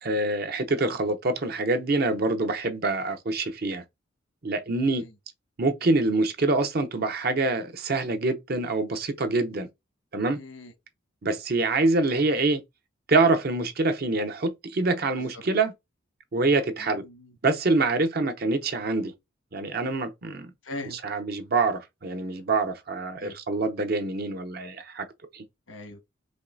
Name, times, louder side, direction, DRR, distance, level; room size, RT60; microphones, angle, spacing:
voice 1, 0.0-3.8 4.4-5.0 5.6-9.7 10.1-10.4 11.2-12.6 13.1-15.7 16.3-17.0 17.4-19.1 19.5-20.5 21.0-25.1 25.3-25.4, right 3 dB, 50° right, 0.7 m, -25 dB
voice 2, 4.8-5.1 10.3-10.7 15.1-15.4 16.8-17.3 18.2-18.3 20.6-21.0 23.2-23.3 25.7-26.0, left 2 dB, 85° left, 1.4 m, -41 dB
5.1 x 3.2 x 2.6 m
head